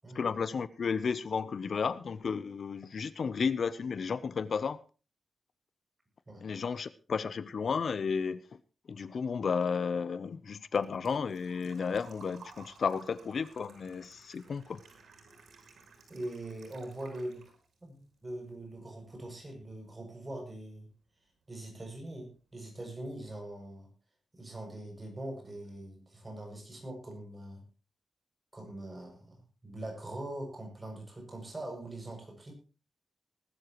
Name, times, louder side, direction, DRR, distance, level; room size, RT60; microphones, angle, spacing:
voice 1, 0.1-4.8 6.4-8.4 8.9-14.8, left 5 dB, 60° left, 16 dB, 0.7 m, -33 dB
Engine / Trickle dribble / Fill (with liquid), 10.0-17.8 18.1-19.1 19.4-19.5 21.4-21.5 21.7-22.0 22.4-22.5 22.8-22.9, right 5 dB, 90° right, 5.7 m, -57 dB
voice 2, 16.1-17.5 17.8-20.9 21.5-23.9 24.3-27.6 28.5-32.5, right 1 dB, 25° right, 2 dB, 7.2 m, -42 dB
20.0 x 12.5 x 3.1 m, 0.35 s
wide cardioid pair, 110°, 0 cm